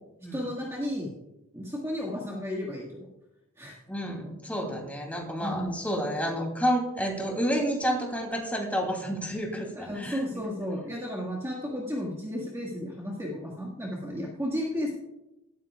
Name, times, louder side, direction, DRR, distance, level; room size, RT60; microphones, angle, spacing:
voice 1, 0.3-1.1 1.5-3.0 3.6-3.7 5.4-5.8 9.8-14.9, equal, 15° right, -3 dB, 1.8 m, -33 dB
voice 2, 3.9-10.4, equal, 5° left, 0 dB, 2.9 m, -30 dB
18.0 x 13.0 x 2.4 m, 0.94 s
head